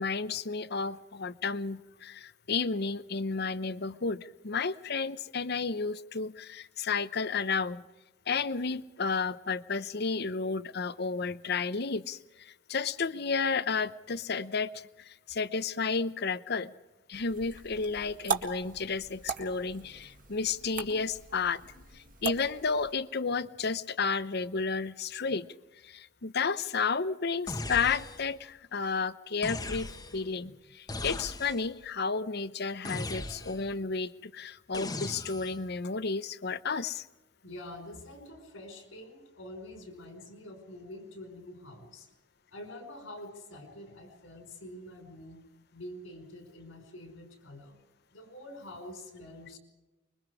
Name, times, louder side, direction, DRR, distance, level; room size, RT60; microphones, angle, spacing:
voice 1, 0.0-7.8 8.3-16.7 17.1-25.5 25.8-29.9 30.1-37.1, left 4 dB, 55° left, 15 dB, 0.8 m, -32 dB
sound 1, 17.1-23.0, right 5 dB, 45° right, 1.9 m, -39 dB
sound 2, 27.5-28.4 29.4-30.3 30.9-31.8 32.9-33.8 34.7-35.7, left 2 dB, 20° left, 1.2 m, -38 dB
voice 2, 37.4-42.1 42.5-45.4 45.7-47.8 48.1-49.6, left 1 dB, 85° left, 5 dB, 5.2 m, -46 dB
25.5 x 23.0 x 4.9 m, 1.1 s
head